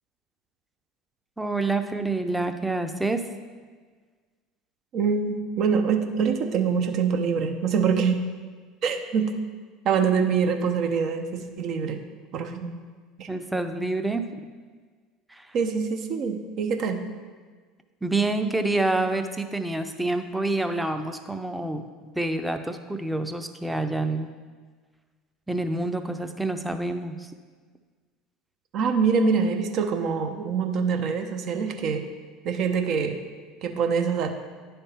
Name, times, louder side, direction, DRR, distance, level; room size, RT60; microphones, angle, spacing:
voice 1, 1.4-3.2 13.3-14.3 15.3-15.6 18.0-24.3 25.5-27.3, right 2 dB, 5° right, 7 dB, 0.6 m, -27 dB
voice 2, 4.9-8.2 8.8-9.4 9.8-12.0 12.3-12.8 13.2-13.3 15.5-17.0 28.7-32.1 32.4-33.2 33.6-34.3, right 6 dB, 55° right, 5 dB, 0.7 m, -25 dB
9.9 x 3.5 x 4.3 m, 1.5 s
hypercardioid pair, 75°, 0 cm